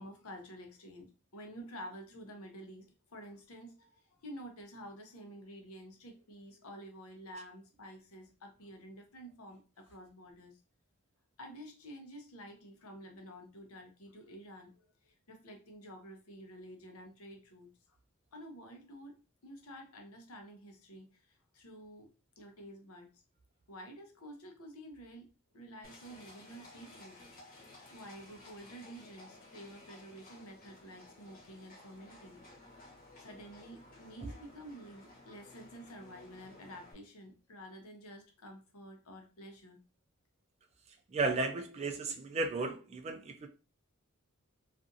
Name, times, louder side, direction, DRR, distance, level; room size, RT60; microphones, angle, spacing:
voice 1, 0.0-10.6 11.4-18.0 18.3-23.2 23.7-25.3 25.5-27.2 27.9-32.4 33.2-39.8, equal, 90° left, 0.7 m, -50 dB
Livestock farm animals working animals, 25.8-36.9, left 2 dB, 45° left, 1.0 m, -56 dB
voice 2, 41.1-43.5, right 3 dB, 30° right, 0.3 m, -34 dB
2.5 x 2.5 x 2.6 m
head